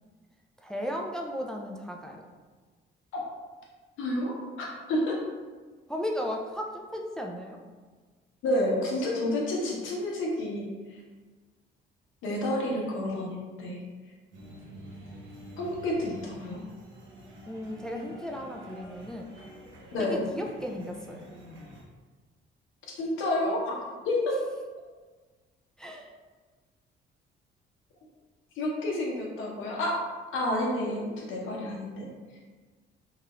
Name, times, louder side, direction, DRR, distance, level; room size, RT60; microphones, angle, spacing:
voice 1, 0.6-2.2 5.9-7.6 17.5-19.3 20.0-21.3 25.8-26.1, equal, 5° left, 1 dB, 0.3 m, -35 dB
voice 2, 4.0-5.2 8.4-10.7 12.2-13.8 15.6-16.6 19.9-20.2 23.0-23.7 24.0-24.4 28.6-30.0 30.3-32.1, left 1 dB, 80° left, -2 dB, 0.8 m, -29 dB
sound 1, 14.3-21.8, equal, 80° right, 0.7 m, -48 dB
3.1 x 2.3 x 2.9 m, 1.4 s
cardioid pair, 90°, 20 cm